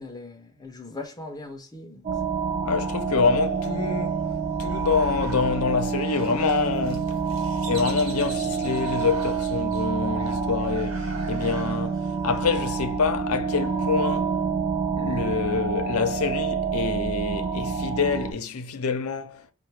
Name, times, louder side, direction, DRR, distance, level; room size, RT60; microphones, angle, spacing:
voice 1, 0.0-2.1, left 2 dB, 20° left, 0.5 m, -40 dB
sound 1, 2.0-18.3, right 5 dB, 45° right, 0.6 m, -27 dB
voice 2, 2.6-4.2 4.6-7.2 7.7-14.3 15.0-19.5, left 5 dB, 90° left, 0.6 m, -26 dB
sound 2, 3.2-12.4, right 4 dB, 75° right, 1.0 m, -46 dB
4.7 x 2.2 x 3.2 m
head